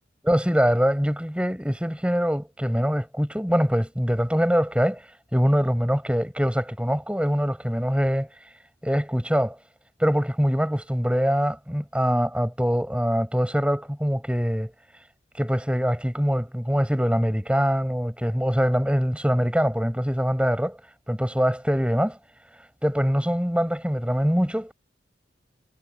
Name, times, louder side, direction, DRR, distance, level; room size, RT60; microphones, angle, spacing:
voice 1, 0.3-5.0 5.3-8.3 8.8-9.6 10.0-14.7 15.3-20.8 21.1-22.2 22.8-24.7, equal, 5° right, 7.9 m, -23 dB
head